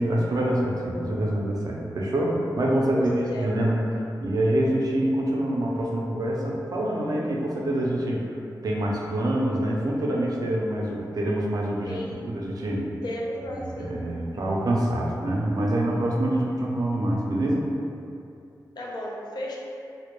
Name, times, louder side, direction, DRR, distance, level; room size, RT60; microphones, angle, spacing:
voice 1, 0.0-8.3 8.6-12.0 12.3-12.9 13.6-17.7, right 1 dB, 60° right, -2 dB, 0.4 m, -26 dB
voice 2, 2.9-3.5 11.8-12.3 13.0-14.0 18.8-19.6, left 1 dB, 70° left, -3 dB, 0.4 m, -33 dB
2.1 x 2.1 x 2.9 m, 2.6 s
wide cardioid pair, 75°, 8 cm